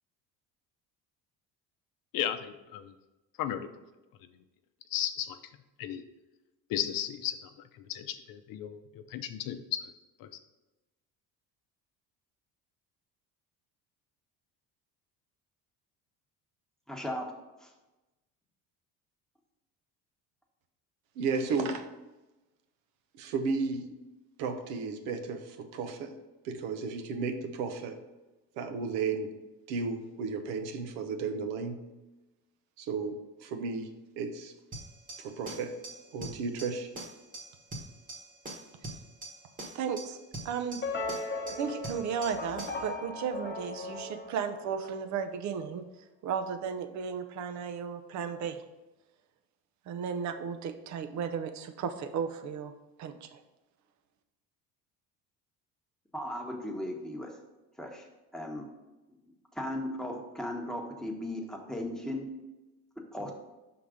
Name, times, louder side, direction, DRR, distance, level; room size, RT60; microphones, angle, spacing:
voice 1, 2.1-2.9 3.4-3.7 4.9-5.4 5.8-6.0 6.7-9.9 10.2-10.3, left 10 dB, 60° left, 9 dB, 0.7 m, -35 dB
voice 2, 16.9-17.3 17.6-17.7 56.1-57.4 57.8-58.1 58.3-58.7 59.5-62.3 63.1-63.3, left 1 dB, ahead, 0 dB, 1.0 m, -36 dB
voice 3, 21.2-21.9 23.2-23.9 24.4-26.2 26.4-28.0 28.6-29.3 29.7-31.8 32.8-33.9 34.2-34.5 35.2-35.7 36.1-36.9, right 4 dB, 85° right, 7 dB, 0.8 m, -33 dB
sound 1, 34.7-42.9, right 2 dB, 20° right, 1.2 m, -44 dB
voice 4, 39.7-40.2 40.4-40.8 41.6-45.9 46.2-48.6 49.9-52.7 53.0-53.4, right 7 dB, 50° right, 10 dB, 0.6 m, -34 dB
sound 2, 40.8-45.1, left 3 dB, 30° left, 0.9 m, -38 dB
5.6 x 3.9 x 4.9 m, 1.1 s
supercardioid pair, 95°, 38 cm